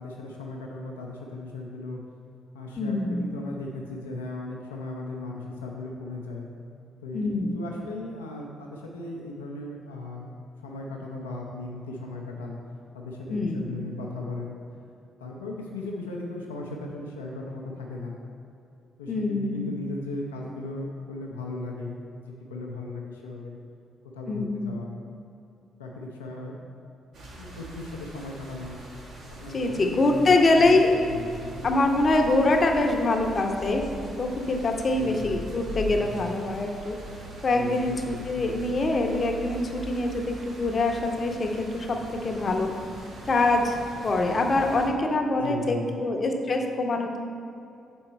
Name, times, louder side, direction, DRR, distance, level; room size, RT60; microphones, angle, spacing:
voice 1, 0.0-2.0 2.5-6.5 7.0-10.3 10.6-12.6 12.9-14.6 15.2-18.1 19.0-23.6 24.1-24.9 25.8-26.6 27.4-28.8 29.4-30.8 31.1-31.7 34.9-35.4 35.9-36.3 37.5-38.6 45.3-46.0, left 2 dB, 85° left, -1 dB, 0.6 m, -37 dB
voice 2, 2.8-3.2 7.1-7.6 13.3-13.7 19.1-19.7 24.3-24.7 29.5-31.0 31.6-37.0 37.4-42.0 42.2-42.7 43.3-47.2, left 2 dB, 45° left, 3 dB, 0.8 m, -24 dB
sound 1, 27.1-44.9, equal, 65° right, 1.3 m, -41 dB
6.2 x 4.5 x 4.3 m, 2.6 s
figure-of-eight pair, 40°, 0 cm